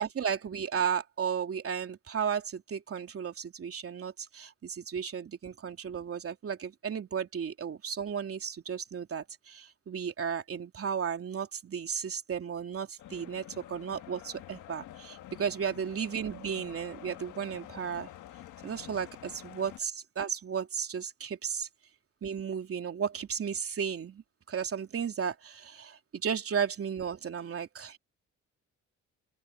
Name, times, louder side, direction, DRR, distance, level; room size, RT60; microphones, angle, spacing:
voice 1, 0.0-18.1 18.6-21.7 22.2-28.0, right 7 dB, 50° right, 3.2 m, -34 dB
sound 1, 13.0-19.8, left 12 dB, 80° left, 1.5 m, -48 dB
open air
cardioid pair, 90°, 30 cm